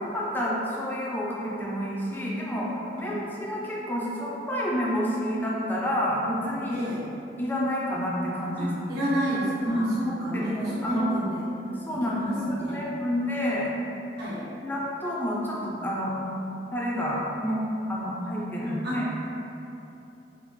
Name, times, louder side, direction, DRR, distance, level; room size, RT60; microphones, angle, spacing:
voice 1, 0.0-6.8 7.4-9.1 9.7-11.1 11.8-13.7 14.6-16.2 16.7-19.1, equal, 10° left, -5 dB, 0.4 m, -29 dB
voice 2, 6.7-7.0 8.6-11.4 11.9-12.9 14.2-14.5 18.6-19.0, equal, 65° right, -9 dB, 1.0 m, -30 dB
3.6 x 2.3 x 3.1 m, 2.8 s
head